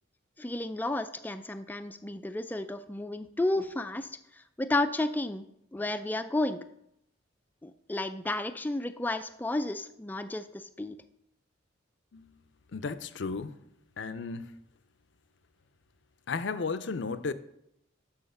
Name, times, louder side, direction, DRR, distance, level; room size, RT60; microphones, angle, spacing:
voice 1, 0.4-4.1 4.6-5.5 5.7-6.6 7.6-11.0, left 2 dB, 10° left, 0.3 m, -32 dB
voice 2, 12.7-13.6 14.0-14.5 16.3-17.3, left 4 dB, 65° left, 0.5 m, -34 dB
6.4 x 5.7 x 6.9 m
head